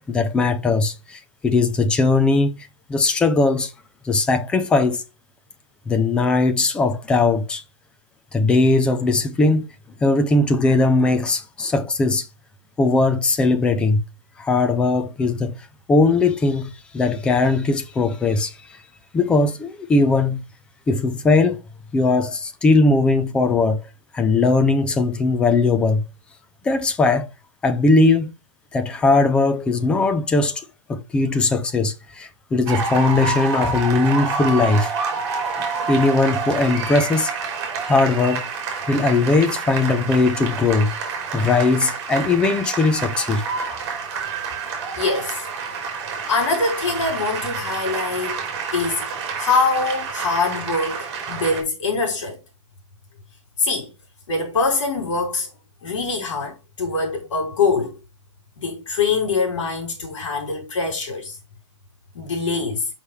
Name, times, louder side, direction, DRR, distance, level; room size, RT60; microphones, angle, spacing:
voice 1, 0.1-2.6 2.9-3.7 4.0-5.0 5.9-7.6 8.3-9.7 10.0-12.3 12.8-14.0 14.4-15.6 15.9-18.5 19.1-20.4 20.9-21.6 21.9-23.8 24.1-26.0 26.6-27.3 27.6-28.3 28.7-30.6 30.9-34.9 35.9-37.5 37.8-38.5 38.9-40.9 41.3-43.4, left 3 dB, 5° left, 0.5 m, -19 dB
sound 1, 32.7-51.6, right 5 dB, 35° right, 3.5 m, -28 dB
voice 2, 45.0-45.4 46.3-48.4 48.7-49.0 49.4-52.4 53.6-53.9 54.3-55.5 55.8-58.0 58.6-61.4 62.1-62.9, left 4 dB, 70° left, 3.8 m, -23 dB
6.5 x 5.6 x 3.1 m
hypercardioid pair, 170°, 16 cm